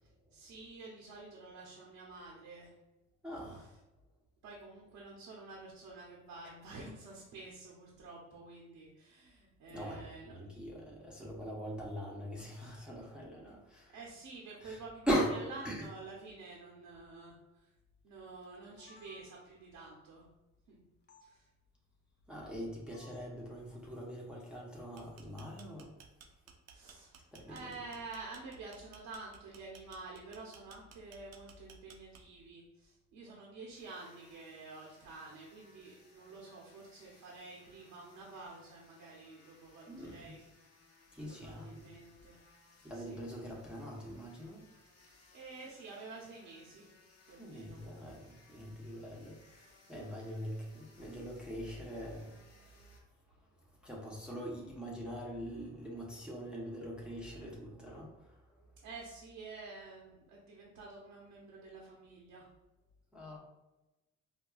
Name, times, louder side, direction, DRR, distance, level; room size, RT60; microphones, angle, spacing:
voice 1, 0.3-2.7 4.4-10.5 13.9-15.1 15.4-17.4 18.0-20.2 20.7-20.8 21.2-21.5 26.7-27.2 27.5-40.4 41.3-42.4 42.9-43.2 45.3-46.9 47.2-47.8 50.9-51.2 58.8-62.5, right 3 dB, 85° right, -3 dB, 0.8 m, -49 dB
voice 2, 3.2-3.7 9.7-14.0 14.6-14.8 15.1-15.3 15.6-15.9 22.3-26.0 27.3-27.8 39.9-40.4 41.1-42.0 42.8-44.7 47.4-53.0 53.3-58.7 63.1-63.4, equal, 5° right, -4 dB, 0.7 m, -42 dB
sound 1, 18.4-19.7 21.1-21.3 22.9-23.4, left 3 dB, 35° left, 0.6 m, -60 dB
sound 2, 24.8-32.5, right 6 dB, 60° right, 0.5 m, -57 dB
sound 3, 33.7-53.0, left 2 dB, 55° left, 0.9 m, -65 dB
4.2 x 2.2 x 2.3 m, 1.0 s
cardioid pair, 90°, 30 cm